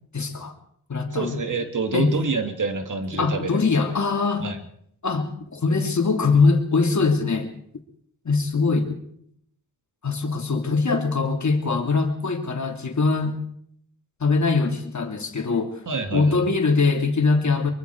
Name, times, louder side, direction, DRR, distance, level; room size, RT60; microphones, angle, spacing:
voice 1, 0.1-0.5 0.9-1.4 1.9-2.1 3.1-4.5 5.0-7.5 8.2-8.9 10.0-13.3 14.2-15.8 16.1-17.7, left 4 dB, 50° left, 4 dB, 3.1 m, -22 dB
voice 2, 1.1-3.5 4.4-4.6 15.9-16.4, right 4 dB, 55° right, 6 dB, 2.5 m, -27 dB
24.0 x 23.5 x 4.8 m, 0.69 s
cardioid pair, 80°, 36 cm